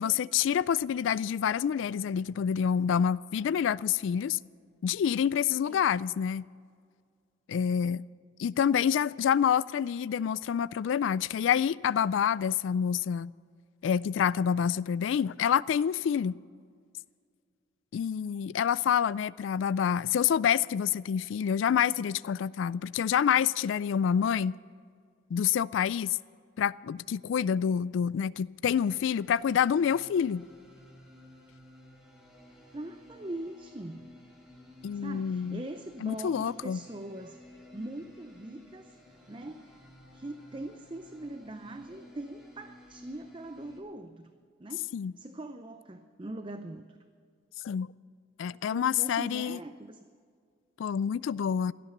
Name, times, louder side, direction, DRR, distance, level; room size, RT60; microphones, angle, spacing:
voice 1, 0.0-4.4 4.8-6.4 7.5-8.0 8.4-13.3 13.8-16.3 17.9-24.5 25.3-26.2 26.6-30.5 34.8-35.6 36.0-36.8 44.9-45.1 47.6-47.9 48.4-49.6 50.8-51.7, left 8 dB, 75° left, 0.3 m, -27 dB
sound 1, 28.7-43.8, left 1 dB, 5° right, 2.7 m, -54 dB
voice 2, 32.7-34.1 34.9-37.4 37.7-39.0 39.3-39.8 40.1-44.3 44.6-44.9 45.2-47.0 48.5-50.1, right 1 dB, 25° right, 0.6 m, -42 dB
17.0 x 13.0 x 6.6 m
head